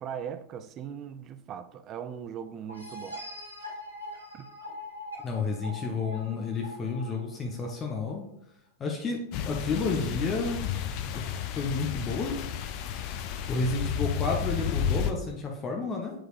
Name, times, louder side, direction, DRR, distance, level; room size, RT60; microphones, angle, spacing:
voice 1, 0.0-3.2 4.3-4.5, right 8 dB, 30° right, 0.5 m, -39 dB
sound 1, 2.7-8.2, left 1 dB, 90° right, 1.7 m, -43 dB
voice 2, 5.2-8.2 8.8-10.7 11.1-12.4 13.5-16.1, left 4 dB, 25° left, 1.0 m, -31 dB
sound 2, 9.3-15.1, left 8 dB, 45° left, 0.5 m, -32 dB
7.6 x 4.7 x 3.3 m
figure-of-eight pair, 90°, 0 cm